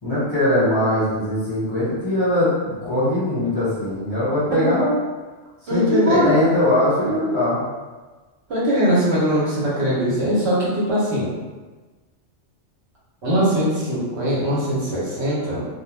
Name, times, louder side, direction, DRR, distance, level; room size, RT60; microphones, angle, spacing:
voice 1, 0.0-5.0 5.7-7.6, left 1 dB, 25° left, -11 dB, 1.2 m, -20 dB
voice 2, 5.7-6.3 8.5-11.3 13.2-15.7, equal, 65° right, -8 dB, 1.0 m, -21 dB
2.3 x 2.3 x 3.1 m, 1.3 s
omnidirectional pair, 1.2 m